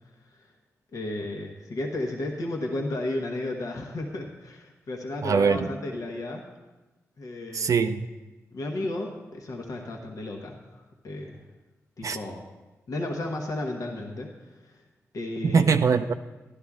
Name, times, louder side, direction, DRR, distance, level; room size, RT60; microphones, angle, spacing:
voice 1, 0.9-6.5 7.2-7.7 8.5-11.4 12.0-12.5 12.9-14.8 15.1-15.7, left 1 dB, 70° left, 1.2 m, -33 dB
voice 2, 5.2-5.7 7.5-8.1 12.0-12.2 15.4-16.1, right 5 dB, 65° right, 0.4 m, -22 dB
11.5 x 11.0 x 3.6 m
supercardioid pair, 45°, 6 cm